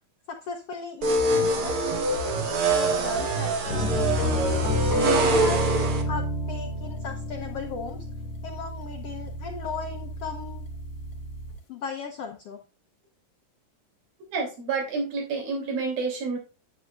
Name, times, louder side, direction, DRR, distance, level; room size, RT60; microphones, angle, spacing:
voice 1, 0.3-1.8 2.4-3.9 5.0-8.0 8.4-10.7 11.7-12.6, left 5 dB, 75° left, 3 dB, 1.4 m, -36 dB
sound 1, 1.0-6.0, right 2 dB, 55° right, 1.7 m, -24 dB
sound 2, 3.7-11.6, left 1 dB, 45° left, 3.1 m, -30 dB
voice 2, 14.3-16.4, right 4 dB, 90° right, 1 dB, 4.9 m, -29 dB
9.5 x 8.9 x 2.4 m, 0.32 s
omnidirectional pair, 4.0 m